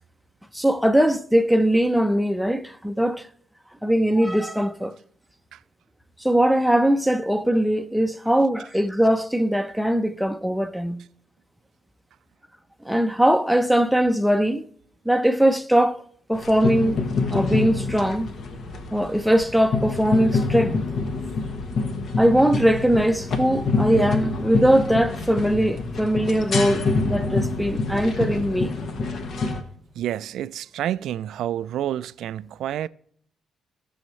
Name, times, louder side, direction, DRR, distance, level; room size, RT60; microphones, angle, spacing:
voice 1, 0.5-3.3 3.8-5.0 6.2-11.0 12.8-14.6 15.1-16.0 16.3-18.3 18.9-20.8 22.2-28.7, right 1 dB, ahead, 0.7 m, -21 dB
sound 1, 16.3-29.6, left 3 dB, 60° left, 1.2 m, -26 dB
voice 2, 29.9-32.9, right 11 dB, 75° right, 0.3 m, -29 dB
17.5 x 6.4 x 3.1 m
cardioid pair, 90°, 0 cm